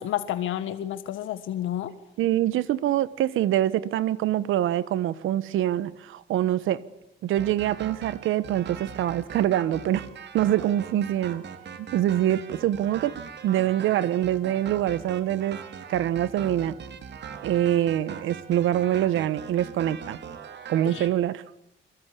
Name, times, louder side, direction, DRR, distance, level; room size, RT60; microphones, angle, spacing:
voice 1, 0.0-1.9 20.9-21.1, left 11 dB, 80° left, 1.6 m, -30 dB
voice 2, 2.2-6.8 7.2-10.1 10.3-11.4 11.8-15.6 15.9-16.7 17.4-20.2 20.7-21.4, right 12 dB, 85° right, 1.4 m, -25 dB
sound 1, 7.4-21.1, right 7 dB, 60° right, 3.2 m, -41 dB
27.0 x 23.5 x 8.6 m
cardioid pair, 90°, 20 cm